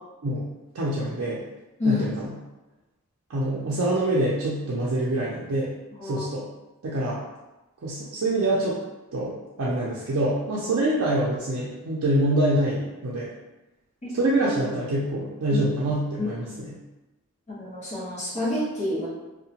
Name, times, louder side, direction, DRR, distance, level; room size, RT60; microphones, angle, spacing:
voice 1, 0.7-1.4 1.8-2.3 3.3-5.7 6.0-6.5 6.8-7.2 7.8-8.8 9.1-9.3 9.6-13.3 14.1-16.7, right 1 dB, 65° right, -6 dB, 0.5 m, -25 dB
voice 2, 1.8-2.1 6.0-6.3 14.0-14.1 15.5-15.6 16.2-16.5 17.5-19.1, left 2 dB, 30° left, -8 dB, 0.9 m, -28 dB
2.8 x 2.1 x 2.8 m, 1.0 s
head